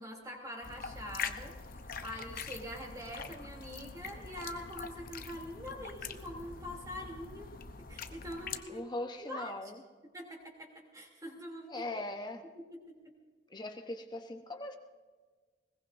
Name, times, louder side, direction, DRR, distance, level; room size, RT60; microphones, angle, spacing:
voice 1, 0.0-7.5 7.9-8.8 9.2-9.7 10.1-12.0 12.5-13.1, equal, 20° right, 1 dB, 3.2 m, -44 dB
sound 1, 0.6-8.6, left 5 dB, 45° left, 0.9 m, -43 dB
voice 2, 8.7-9.8 11.7-12.4 13.5-14.8, left 2 dB, 20° left, 4 dB, 1.1 m, -40 dB
21.5 x 20.0 x 2.7 m, 1.4 s
head